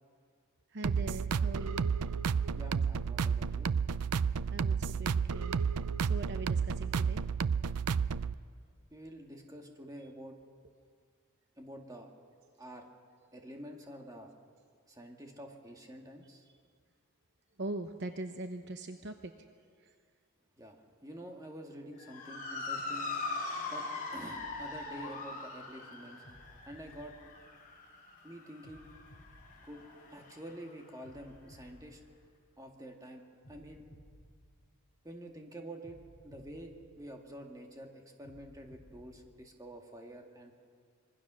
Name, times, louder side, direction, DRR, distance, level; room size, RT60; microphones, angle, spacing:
voice 1, 0.7-1.9 4.5-5.5 6.0-7.2 17.6-19.3, right 2 dB, 50° right, 6 dB, 0.9 m, -41 dB
Through the Caves Hatz and Clapz, 0.8-8.3, right 6 dB, 90° right, 0.5 m, -31 dB
voice 2, 2.6-3.7 8.9-10.4 11.6-12.1 12.6-12.9 13.3-14.3 14.9-16.5 20.6-23.1 23.7-23.9 24.1-26.2 26.7-27.1 28.2-28.9 29.6-29.8 30.1-32.0 32.6-33.2 33.5-33.8 35.0-36.0 36.2-40.5, right 1 dB, 15° right, 2 dB, 2.1 m, -48 dB
Motor vehicle (road) / Siren, 22.0-30.6, left 3 dB, 40° left, 4.1 m, -41 dB
sound 1, 24.3-25.6 26.2-27.9 28.6-30.4 31.0-32.8 33.4-35.2 35.8-37.5 38.2-39.6, equal, 25° left, 4.8 m, -59 dB
25.5 x 23.0 x 6.3 m, 2.1 s
head